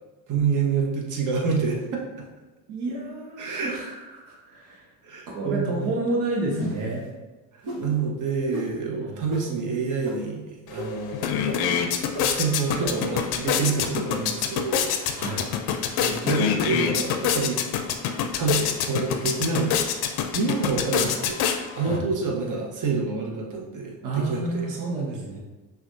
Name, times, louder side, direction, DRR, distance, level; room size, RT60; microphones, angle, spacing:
voice 1, 0.3-2.3 3.4-3.7 5.0-5.9 7.5-11.7 12.2-15.3 16.0-17.6 18.3-19.7 20.3-24.7, right 4 dB, 45° right, -1 dB, 1.0 m, -28 dB
voice 2, 2.7-4.9 5.3-7.0 9.0-9.2 15.2-15.5 21.0-21.1 21.8-22.1 24.0-25.4, right 2 dB, 90° right, -2 dB, 0.8 m, -30 dB
sound 1, 6.5-6.9 7.6-7.8 8.5-8.6 9.3-9.4 10.0-10.1 10.8-10.9 11.5-11.6 12.1-12.2 12.8-12.9 13.5-13.6, equal, 60° right, 1.3 m, -32 dB
sound 2, 10.7-10.8 11.1-22.0, left 8 dB, 60° left, 0.5 m, -26 dB
5.7 x 2.4 x 2.6 m, 1.2 s
supercardioid pair, 65°, 43 cm